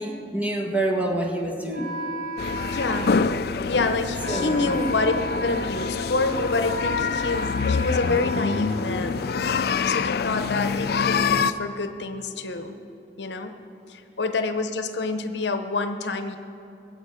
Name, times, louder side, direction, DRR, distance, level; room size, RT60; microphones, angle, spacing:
voice 1, 0.0-1.9 4.3-4.7, right 1 dB, 10° right, 0 dB, 1.5 m, -27 dB
Wind instrument woodwind instrument, 1.7-9.4, equal, 50° right, 2.1 m, -35 dB
voice 2, 2.4-3.2 3.6-5.1 5.4-9.2 9.9-12.8 13.2-13.6 13.9-16.4, left 3 dB, 80° left, 7 dB, 0.8 m, -27 dB
sound 1, 2.4-11.5, left 5 dB, 60° left, 0.4 m, -26 dB
22.0 x 8.1 x 5.0 m, 2.8 s
head